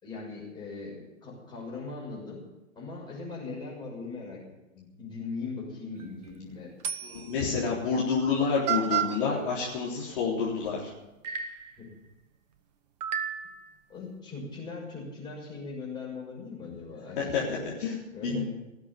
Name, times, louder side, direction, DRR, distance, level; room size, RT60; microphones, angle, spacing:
voice 1, 0.0-2.4 2.7-4.4 4.7-6.7 11.8-11.9 13.9-17.2 17.5-17.6 18.1-18.4, left 4 dB, 10° left, -4 dB, 6.2 m, -40 dB
sound 1, 6.0-6.3 6.8-7.4 8.2-8.3 8.7-9.2 10.7-10.8 11.2-11.7 13.0-13.7, right 9 dB, 30° right, 1.1 m, -31 dB
voice 2, 7.0-10.9 17.3-17.4 17.8-18.0 18.2-18.4, left 5 dB, 40° left, -5 dB, 3.9 m, -28 dB
18.0 x 7.7 x 9.8 m, 0.97 s
figure-of-eight pair, 120°, 40 cm